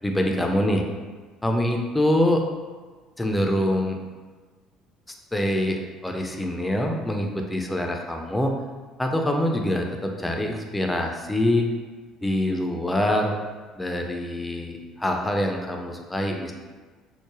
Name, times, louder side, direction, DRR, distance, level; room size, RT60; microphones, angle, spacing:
voice 1, 0.0-0.8 1.4-2.4 3.2-4.0 5.3-8.5 9.0-11.7 12.2-13.4 13.8-16.5, left 1 dB, 10° left, 2 dB, 0.4 m, -25 dB
3.1 x 2.0 x 2.4 m, 1.4 s
figure-of-eight pair, 55°, 0 cm